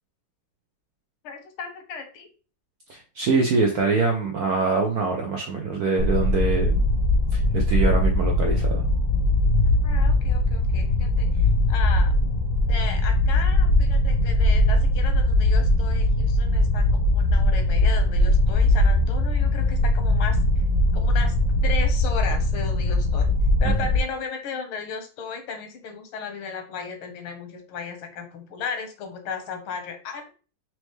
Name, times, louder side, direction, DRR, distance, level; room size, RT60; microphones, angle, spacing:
voice 1, 1.2-2.3 9.8-12.1 12.7-20.4 20.9-21.3 21.6-23.3 23.6-30.2, left 6 dB, 90° left, 6 dB, 1.7 m, -35 dB
voice 2, 2.9-6.8 7.3-8.8 23.6-23.7, right 4 dB, 75° right, 1 dB, 0.8 m, -24 dB
sound 1, 6.0-24.0, left 1 dB, 65° left, 1.0 m, -20 dB
4.4 x 2.8 x 3.1 m, 0.36 s
omnidirectional pair, 2.3 m